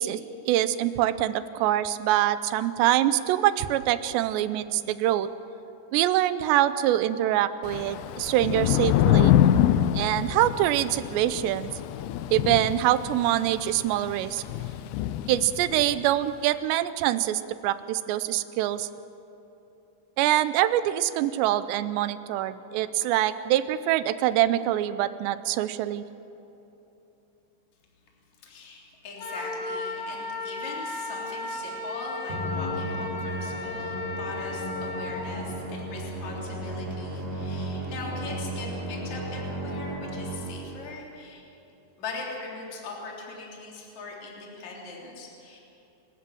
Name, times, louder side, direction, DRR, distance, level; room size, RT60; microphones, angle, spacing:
voice 1, 0.0-5.3 5.9-9.3 9.9-11.7 12.3-14.4 15.3-18.9 20.2-26.0, right 13 dB, 80° right, 13 dB, 2.8 m, -24 dB
Thunder / Rain, 7.6-16.0, left 11 dB, 90° left, 2.3 m, -25 dB
voice 2, 28.4-41.4 42.0-45.6, left 3 dB, 40° left, -3 dB, 4.4 m, -40 dB
Wind instrument woodwind instrument, 29.2-35.3, left 3 dB, 75° left, 6.6 m, -35 dB
Musical instrument, 32.3-40.8, right 1 dB, 45° right, 5.6 m, -34 dB
27.0 x 15.5 x 7.7 m, 3.0 s
omnidirectional pair, 5.2 m